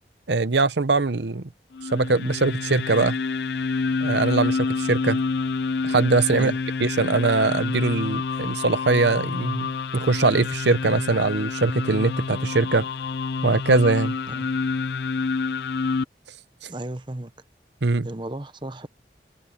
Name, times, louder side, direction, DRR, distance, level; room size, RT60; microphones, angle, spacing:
voice 1, 0.3-1.4 1.9-3.2 4.0-5.2 5.8-6.5 6.8-9.7 9.9-12.8 13.4-14.2 16.6-16.7 17.8-18.1, right 3 dB, 80° right, 0.9 m, -21 dB
sound 1, 1.7-16.0, left 4 dB, 70° left, 0.5 m, -28 dB
voice 2, 14.3-14.6 16.6-17.3 18.0-18.9, right 1 dB, 25° right, 0.9 m, -34 dB
head